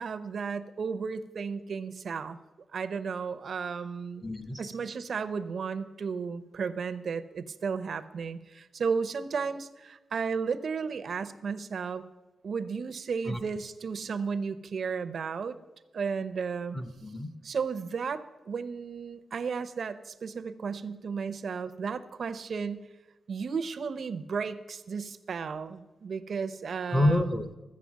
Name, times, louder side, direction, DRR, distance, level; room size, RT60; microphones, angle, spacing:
voice 1, 0.0-2.4 2.7-4.3 4.6-12.0 12.4-15.6 15.9-16.8 17.4-22.9 23.3-27.4, right 5 dB, 55° right, 12 dB, 0.7 m, -34 dB
voice 2, 4.2-4.6 13.3-13.4 16.7-17.3 26.9-27.5, left 1 dB, 20° left, 9 dB, 0.7 m, -27 dB
13.5 x 7.6 x 7.4 m, 1.1 s
wide cardioid pair, 150°, 0 cm